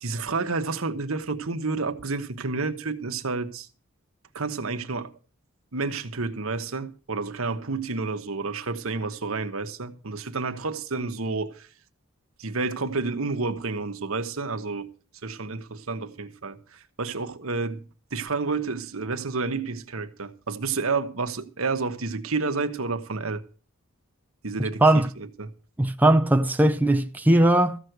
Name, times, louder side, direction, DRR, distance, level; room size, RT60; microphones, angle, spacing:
voice 1, 0.0-3.7 4.3-5.1 5.7-11.7 12.4-14.9 15.2-17.8 18.1-23.4 24.4-25.5, right 4 dB, 75° right, 1.2 m, -30 dB
voice 2, 25.8-27.8, right 1 dB, 10° right, 0.6 m, -19 dB
15.0 x 6.4 x 7.9 m
head